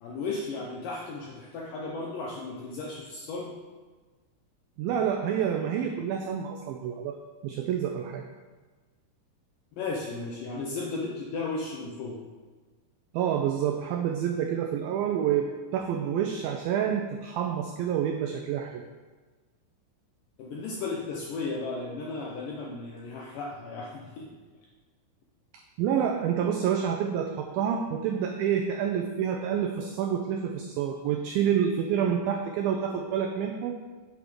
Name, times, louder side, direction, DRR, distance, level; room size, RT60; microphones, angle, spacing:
voice 1, 0.0-3.5 9.8-12.2 20.4-24.3, left 3 dB, 75° left, -2 dB, 2.0 m, -35 dB
voice 2, 4.8-7.2 7.4-8.3 13.1-15.5 15.7-18.8 25.8-33.8, right 8 dB, 90° right, 4 dB, 2.0 m, -28 dB
8.4 x 6.2 x 5.0 m, 1.3 s
omnidirectional pair, 4.9 m